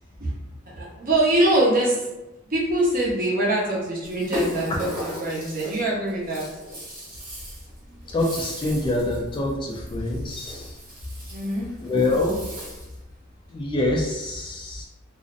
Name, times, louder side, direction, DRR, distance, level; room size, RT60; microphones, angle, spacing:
voice 1, 0.7-2.1 2.5-6.5 11.3-11.7, right 1 dB, 45° right, -4 dB, 0.7 m, -23 dB
Rattle (instrument), 4.0-13.0, equal, 25° right, 1.1 m, -37 dB
voice 2, 8.1-10.8 11.8-12.5 13.5-14.9, left 2 dB, 25° left, -1 dB, 0.3 m, -25 dB
2.5 x 2.0 x 2.4 m, 0.99 s
head